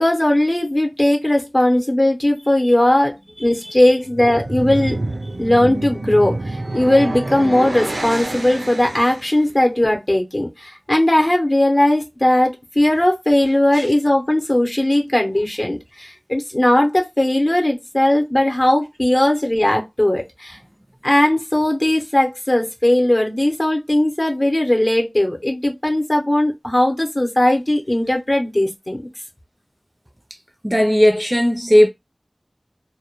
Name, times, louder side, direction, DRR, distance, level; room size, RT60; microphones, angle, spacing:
voice 1, 0.0-5.0 5.4-20.6 21.0-29.1, left 1 dB, 40° left, 0.7 m, -18 dB
voice 2, 3.4-3.7 13.7-13.9 30.6-31.9, equal, 15° right, 0.4 m, -16 dB
sound 1, 4.0-9.4, right 2 dB, 80° right, 0.4 m, -27 dB
2.1 x 2.1 x 2.9 m
wide cardioid pair, 45°, 0 cm